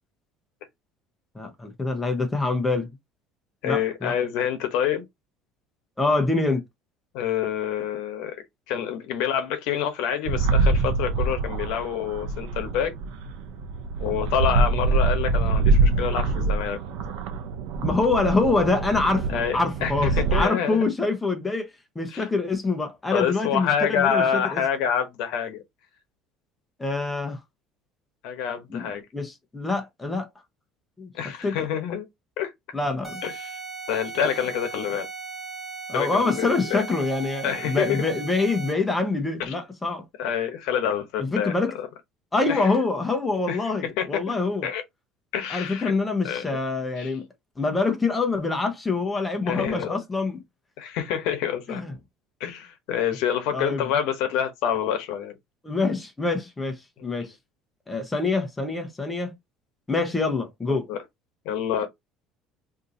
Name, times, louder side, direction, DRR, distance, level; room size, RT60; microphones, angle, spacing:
voice 1, 1.3-2.9 3.6-4.1 6.0-6.6 17.8-19.3 19.5-24.6 26.8-27.4 28.7-30.3 31.0-31.1 31.4-31.6 32.7-33.2 35.9-40.0 41.2-41.8 42.3-44.7 45.5-47.3 47.6-50.4 51.7-51.9 53.5-53.8 55.6-57.3 57.9-59.3 59.9-60.8, left 3 dB, 10° left, 0.8 m, -25 dB
voice 2, 3.6-5.1 7.1-12.9 14.0-16.8 19.3-20.8 22.1-22.2 23.1-25.6 28.2-29.0 31.1-32.0 32.4-32.5 33.2-33.6 33.9-35.1 35.9-36.8 37.4-38.0 39.4-39.6 40.2-41.9 42.5-42.7 43.5-44.2 44.6-44.8 45.3-45.9 46.2-46.4 47.0-47.1 49.5-50.0 50.8-51.8 52.4-55.3 57.2-57.3 60.7-61.0 61.4-61.9, left 8 dB, 75° left, 0.9 m, -27 dB
sound 1, 10.3-20.5, right 3 dB, 75° right, 0.6 m, -24 dB
sound 2, 33.0-38.9, right 4 dB, 5° right, 1.4 m, -37 dB
2.7 x 2.6 x 3.8 m
cardioid pair, 140°, 0 cm